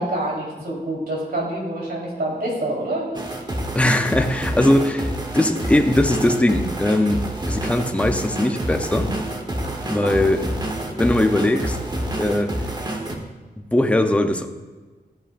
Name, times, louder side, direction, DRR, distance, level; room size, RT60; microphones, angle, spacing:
voice 1, 0.0-3.1 9.6-10.2, right 1 dB, 70° right, -4 dB, 3.7 m, -27 dB
sound 1, 3.1-13.2, right 1 dB, 25° right, 1.3 m, -27 dB
voice 2, 3.7-5.1 5.3-9.1 9.8-10.5 10.9-11.8 12.2-12.5 13.6-14.5, left 1 dB, 5° left, 5 dB, 0.7 m, -20 dB
14.0 x 10.5 x 2.5 m, 1.3 s
wide cardioid pair, 125°, 17 cm